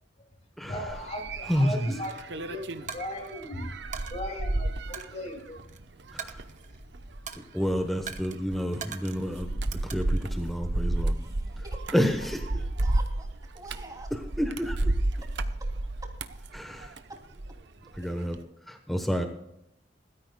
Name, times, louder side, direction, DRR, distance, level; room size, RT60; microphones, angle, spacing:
voice 1, 0.6-3.7 4.1-5.6, left 1 dB, 35° left, 1 dB, 2.4 m, -37 dB
sound 1, 0.9-17.6 17.9-18.4, right 2 dB, 65° right, 0.9 m, -32 dB
voice 2, 1.5-1.9 6.1-6.4 7.5-9.5 9.8-11.2 11.6-11.7 11.9-12.7 14.1-14.8 16.5-16.9 17.9-18.4 18.7-19.2, equal, ahead, 5 dB, 1.0 m, -29 dB
Coin (dropping), 2.0-2.2 2.9-3.4 3.9-4.1 4.9-5.8 6.2-6.9 7.3-7.6 8.1-8.4 8.8-9.3 9.7-10.3, right 7 dB, 45° right, 1.1 m, -41 dB
voice 3, 11.1-11.8 12.8-14.1 18.4-18.5, right 2 dB, 20° right, 1 dB, 2.9 m, -46 dB
20.5 x 13.0 x 2.3 m, 0.80 s
head